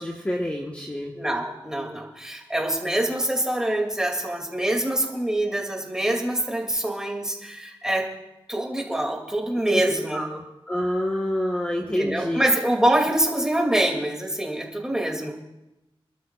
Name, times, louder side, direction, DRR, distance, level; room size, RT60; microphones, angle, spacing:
voice 1, 0.0-1.1 9.7-9.8 10.1-12.5, equal, 15° left, -1 dB, 1.1 m, -27 dB
voice 2, 1.1-8.1 8.5-10.2 11.8-15.3, right 1 dB, 5° right, 0 dB, 2.4 m, -25 dB
28.5 x 12.5 x 2.4 m, 0.93 s
wide cardioid pair, 115°, 10 cm